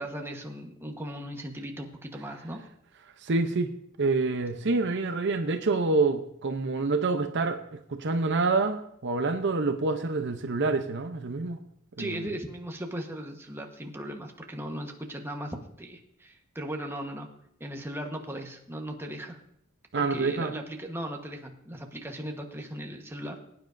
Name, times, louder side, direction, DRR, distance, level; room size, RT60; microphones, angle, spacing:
voice 1, 0.0-2.7 12.0-17.3 17.6-19.4 19.9-23.4, right 1 dB, 10° right, 2 dB, 1.2 m, -37 dB
voice 2, 3.2-3.7 4.0-11.6 12.0-12.2 19.9-20.5, right 3 dB, 55° right, 7 dB, 0.7 m, -27 dB
20.5 x 9.6 x 2.6 m, 0.73 s
head